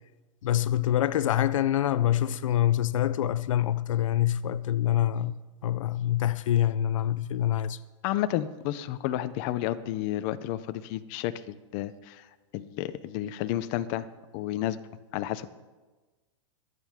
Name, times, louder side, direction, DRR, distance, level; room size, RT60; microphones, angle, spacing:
voice 1, 0.4-5.3 5.6-7.8, left 12 dB, 85° left, 0.5 m, -25 dB
voice 2, 8.0-12.3 12.5-14.1 14.3-14.8 15.1-15.5, left 13 dB, 35° left, 0.6 m, -31 dB
24.5 x 9.3 x 3.6 m
supercardioid pair, 155°, 16 cm